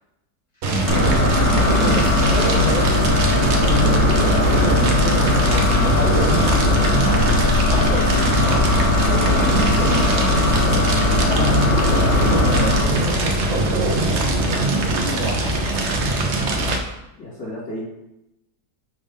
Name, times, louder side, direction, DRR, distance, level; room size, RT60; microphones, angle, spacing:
voice 1, 0.6-10.9 12.2-14.0 14.6-16.2, right 1 dB, 25° left, -3 dB, 1.2 m, -28 dB
Fire, 0.6-16.8, right 1 dB, 50° right, 1.0 m, -21 dB
sound 1, 0.9-12.8, left 3 dB, 65° left, 1.6 m, -20 dB
voice 2, 11.2-11.6 12.7-12.8 14.5-14.7 17.2-17.8, left 2 dB, 85° left, -8 dB, 3.4 m, -31 dB
6.2 x 3.4 x 5.3 m, 0.89 s
omnidirectional pair, 1.8 m